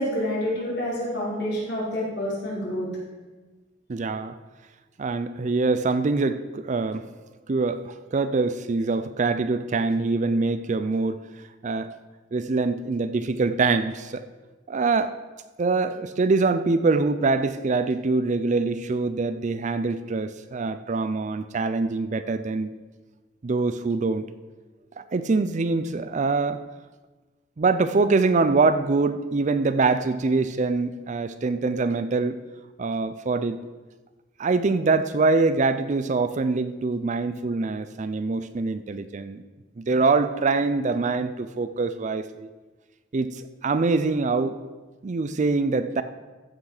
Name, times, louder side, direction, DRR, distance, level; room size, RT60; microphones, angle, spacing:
voice 1, 0.0-2.9, equal, 60° left, -6 dB, 4.0 m, -28 dB
voice 2, 3.9-4.4 5.0-7.1 7.5-11.2 11.6-11.9 12.3-14.2 14.7-15.2 15.6-22.7 23.4-24.3 25.0-26.6 27.6-32.4 32.8-33.7 34.4-39.4 39.8-42.5 43.1-44.6 45.0-46.0, right 3 dB, 40° right, 11 dB, 0.4 m, -24 dB
14.5 x 5.9 x 4.9 m, 1.2 s
head